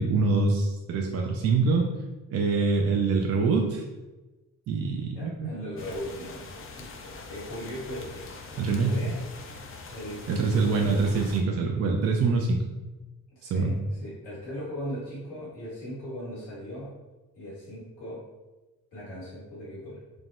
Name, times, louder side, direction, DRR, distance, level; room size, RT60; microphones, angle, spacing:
voice 1, 0.0-1.9 2.3-3.8 4.7-5.5 8.6-9.1 10.3-12.6 13.5-13.7, right 4 dB, 35° right, 0 dB, 0.4 m, -24 dB
voice 2, 5.1-8.4 8.7-9.2 9.9-11.0 13.4-16.9 17.4-18.2 18.9-20.0, equal, 90° left, -8 dB, 1.3 m, -38 dB
sound 1, 5.8-11.4, left 3 dB, 30° left, 0.4 m, -43 dB
3.5 x 2.0 x 2.5 m, 1.1 s
hypercardioid pair, 45°, 48 cm